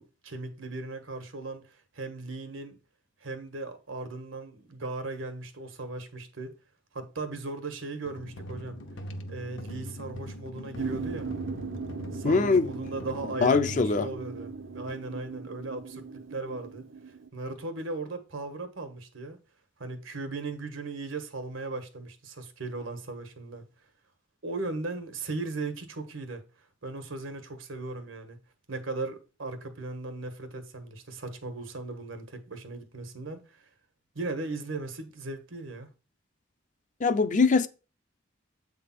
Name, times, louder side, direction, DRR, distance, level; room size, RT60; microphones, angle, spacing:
voice 1, 0.0-2.8 3.2-6.5 6.9-8.8 9.3-11.3 12.1-16.9 17.3-19.4 19.8-23.6 24.4-26.4 26.8-28.4 28.7-33.6 34.1-35.9, right 3 dB, 90° right, 1.4 m, -37 dB
sound 1, 8.0-14.9, equal, 70° left, 1.0 m, -42 dB
sound 2, 10.7-17.3, right 4 dB, 70° right, 0.7 m, -39 dB
voice 2, 12.2-12.7 13.4-14.1 37.0-37.7, left 4 dB, 40° left, 0.5 m, -22 dB
8.2 x 3.5 x 5.9 m
head